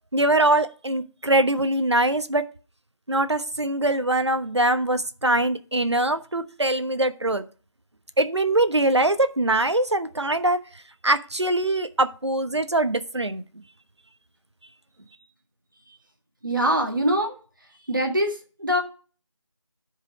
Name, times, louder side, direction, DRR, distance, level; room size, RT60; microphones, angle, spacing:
voice 1, 0.1-2.4 3.1-7.4 8.2-10.6 11.0-13.4, right 2 dB, 60° right, 10 dB, 1.1 m, -22 dB
voice 2, 16.4-17.4 17.8-18.8, equal, 40° right, 2 dB, 1.7 m, -23 dB
11.0 x 5.0 x 4.8 m, 0.37 s
figure-of-eight pair, 180°, 16 cm